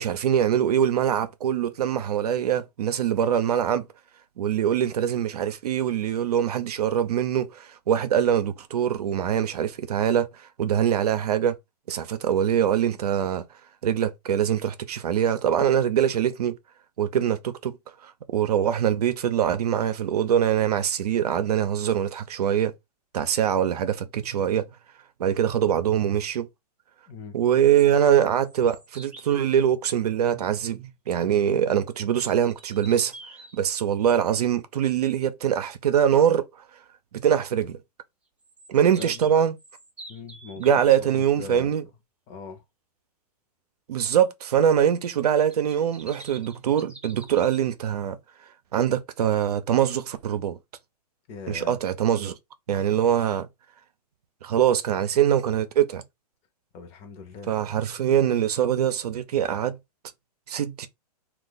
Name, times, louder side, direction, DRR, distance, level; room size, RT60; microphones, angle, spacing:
voice 1, 0.0-3.9 4.4-10.3 10.6-11.5 11.9-13.5 13.8-16.6 17.0-17.8 18.0-22.7 23.1-24.7 25.2-26.5 27.3-33.1 33.5-36.5 37.1-37.8 38.7-39.6 40.6-41.8 43.9-48.2 48.7-50.6 51.5-52.3 52.7-53.5 54.4-56.0 57.5-59.8 60.5-60.9, right 9 dB, 75° right, 0.6 m, -23 dB
voice 2, 27.1-27.4 39.0-39.3 40.1-41.7 42.3-42.6 51.3-51.8 56.7-57.6, left 5 dB, 30° left, 0.7 m, -41 dB
sound 1, 28.3-29.4 32.3-33.6 38.4-41.0 45.4-47.6, right 2 dB, 5° right, 0.6 m, -47 dB
2.5 x 2.4 x 3.9 m
hypercardioid pair, 130°, 20 cm